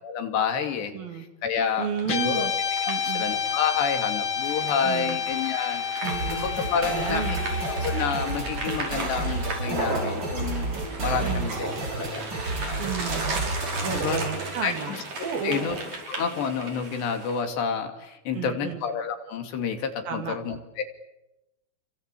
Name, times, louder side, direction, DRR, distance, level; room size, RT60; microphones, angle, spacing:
voice 1, 0.0-1.9 2.1-2.5 2.8-5.8 6.3-7.3 7.8-10.7 11.0-12.3 12.6-12.8 13.9-14.3 14.6-15.0 15.4-15.8 16.1-20.8, left 6 dB, 85° left, 6 dB, 4.9 m, -29 dB
voice 2, 0.9-1.2 1.8-2.5 2.9-3.3 4.8-5.2 6.0-6.5 6.9-7.5 11.2-11.5 12.8-13.4 13.8-15.0 15.2-15.7 18.4-18.8 20.1-20.4, right 8 dB, 60° right, 5 dB, 4.5 m, -32 dB
Guitar, 2.0-10.5, left 8 dB, 45° left, 1.8 m, -31 dB
sound 1, 2.0-17.4, right 2 dB, 45° right, 6.6 m, -35 dB
sound 2, 6.0-14.4, right 3 dB, 25° right, 5.8 m, -31 dB
28.0 x 25.0 x 8.5 m, 0.96 s
omnidirectional pair, 4.8 m